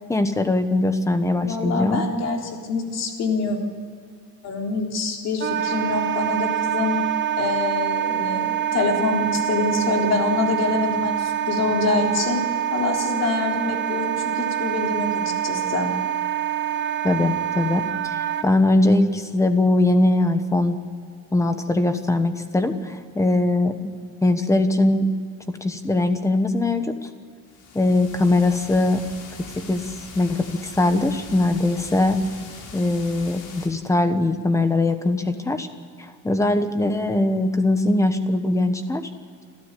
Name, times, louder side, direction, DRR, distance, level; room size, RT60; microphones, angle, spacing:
voice 1, 0.1-2.0 17.0-20.8 21.3-23.8 24.2-25.1 25.5-27.1 27.7-29.0 29.4-32.2 32.7-35.7 36.0-39.1, left 2 dB, 10° left, 8 dB, 1.2 m, -21 dB
voice 2, 1.4-3.6 4.4-7.0 7.4-12.4 12.7-15.9, left 3 dB, 55° left, 1 dB, 3.7 m, -25 dB
Wind instrument woodwind instrument, 5.4-18.5, right 10 dB, 35° right, 0.7 m, -25 dB
sound 1, 27.5-33.7, left 4 dB, 75° left, 4.5 m, -41 dB
28.5 x 13.5 x 8.4 m, 2.1 s
cardioid pair, 175°, 31 cm